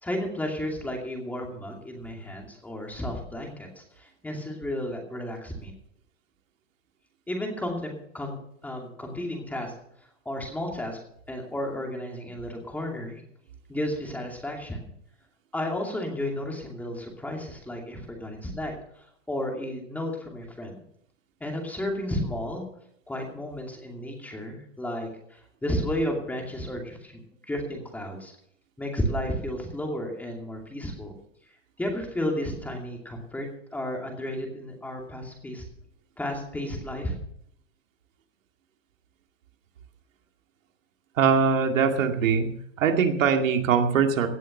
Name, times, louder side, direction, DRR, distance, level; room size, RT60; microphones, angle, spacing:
voice 1, 0.0-5.7 7.3-8.4 8.6-9.7 10.2-11.0 11.3-13.2 13.7-14.9 15.5-20.8 21.4-22.6 23.1-27.2 27.5-28.3 28.8-31.1 31.8-35.6 36.2-37.1, left 1 dB, 5° left, 1 dB, 2.5 m, -33 dB
voice 2, 41.2-42.5 42.8-44.3, right 6 dB, 85° right, 4 dB, 2.4 m, -22 dB
17.0 x 7.4 x 6.6 m, 0.71 s
supercardioid pair, 155°, 38 cm